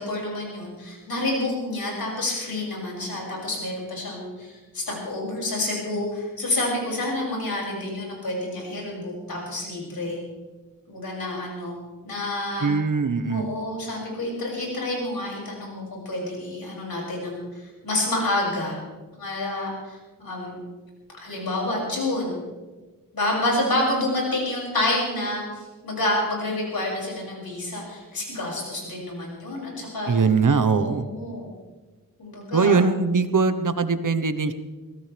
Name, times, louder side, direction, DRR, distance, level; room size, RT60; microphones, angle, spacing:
voice 1, 0.0-10.2 10.9-11.7 12.0-12.7 13.3-18.8 19.2-20.5 21.1-22.4 23.1-30.1 30.8-31.5 32.2-32.8, left 1 dB, 85° left, -3 dB, 6.8 m, -28 dB
voice 2, 12.6-13.5 30.1-31.1 32.5-34.5, right 4 dB, 65° right, 10 dB, 1.2 m, -21 dB
24.0 x 17.0 x 3.5 m, 1.3 s
wide cardioid pair, 70°, 35 cm